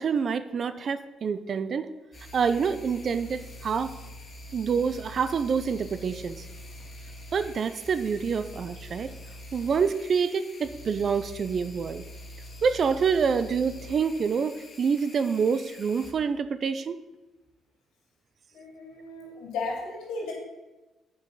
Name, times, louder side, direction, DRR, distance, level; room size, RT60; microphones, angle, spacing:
voice 1, 0.0-1.9 2.3-4.0 4.5-6.4 7.3-9.1 9.5-12.0 12.6-17.0, right 6 dB, 50° right, 12 dB, 0.6 m, -27 dB
sound 1, 2.1-16.1, left 1 dB, 45° left, 1.8 m, -45 dB
voice 2, 18.5-20.3, left 3 dB, 90° left, -2 dB, 2.8 m, -35 dB
8.2 x 5.4 x 5.5 m, 1.1 s
cardioid pair, 90°, 0 cm